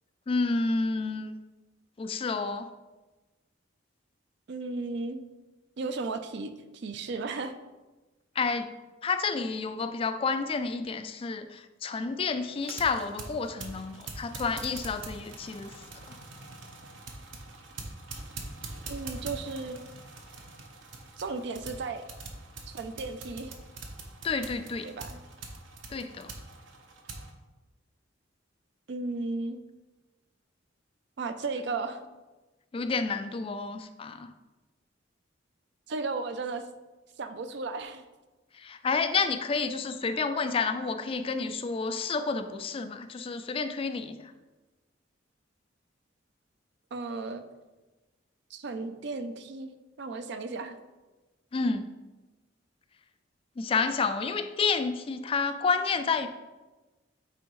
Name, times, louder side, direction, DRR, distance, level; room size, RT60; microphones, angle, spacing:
voice 1, 0.3-1.3 2.0-2.7 8.4-8.7 9.0-15.7 24.2-24.9 25.9-26.3 32.7-34.3 38.6-44.3 51.5-51.9 53.6-56.3, left 4 dB, 30° left, 9 dB, 0.3 m, -30 dB
voice 2, 4.5-5.2 5.8-7.5 18.9-19.8 21.2-22.1 22.7-23.6 24.8-25.2 28.9-29.6 31.2-32.0 35.9-36.6 37.2-38.0 46.9-47.4 48.5-50.8, right 3 dB, 60° right, 9 dB, 0.4 m, -35 dB
sound 1, 12.5-27.3, right 3 dB, 80° right, 0.8 m, -44 dB
8.9 x 3.5 x 3.1 m, 1.2 s
head